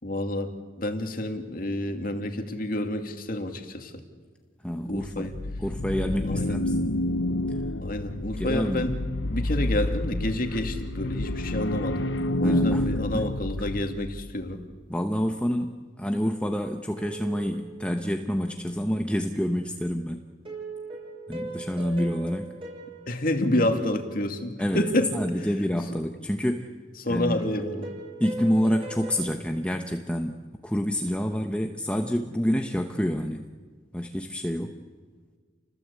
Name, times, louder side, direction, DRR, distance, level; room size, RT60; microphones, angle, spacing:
voice 1, 0.0-4.0 4.9-5.3 6.2-6.6 7.8-8.9 9.2-12.1 12.4-14.6 23.1-25.1 25.4-25.5 27.0-27.9, left 1 dB, 50° left, 5 dB, 2.5 m, -29 dB
voice 2, 4.6-5.3 5.6-6.9 8.4-8.9 12.4-12.9 13.1-13.2 14.9-20.2 21.3-22.5 24.6-26.7 27.1-27.4 28.2-30.4 30.6-33.4 33.9-34.8, equal, 5° left, 4 dB, 1.0 m, -28 dB
sound 1, 5.0-14.3, left 1 dB, 80° left, 0.9 m, -29 dB
sound 2, 17.0-18.5 20.4-24.1 24.7-26.2 27.4-29.2, right 3 dB, 30° right, 7.0 m, -40 dB
29.0 x 20.5 x 8.3 m, 1.5 s
head